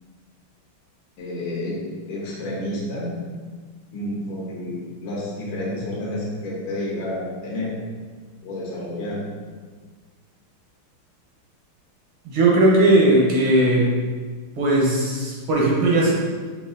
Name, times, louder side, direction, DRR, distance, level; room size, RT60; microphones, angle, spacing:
voice 1, 1.2-1.8 2.0-3.1 3.9-7.7 8.4-9.2, left 1 dB, 65° left, -5 dB, 1.5 m, -30 dB
voice 2, 12.3-14.0 14.6-16.1, right 1 dB, 80° right, -4 dB, 1.9 m, -18 dB
5.4 x 2.9 x 2.6 m, 1.5 s
omnidirectional pair, 2.3 m